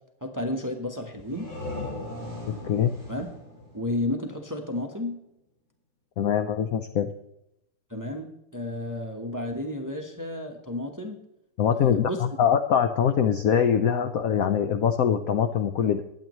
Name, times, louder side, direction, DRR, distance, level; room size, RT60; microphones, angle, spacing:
voice 1, 0.2-1.5 3.1-3.3 3.7-5.2 7.9-11.2 11.7-12.2, left 1 dB, 15° right, 4 dB, 0.8 m, -32 dB
sound 1, 1.1-4.7, left 2 dB, 55° left, 6.5 m, -38 dB
voice 2, 6.2-7.1 11.6-16.0, left 8 dB, 75° left, 8 dB, 0.8 m, -23 dB
21.0 x 8.7 x 3.1 m, 0.84 s
omnidirectional pair, 2.3 m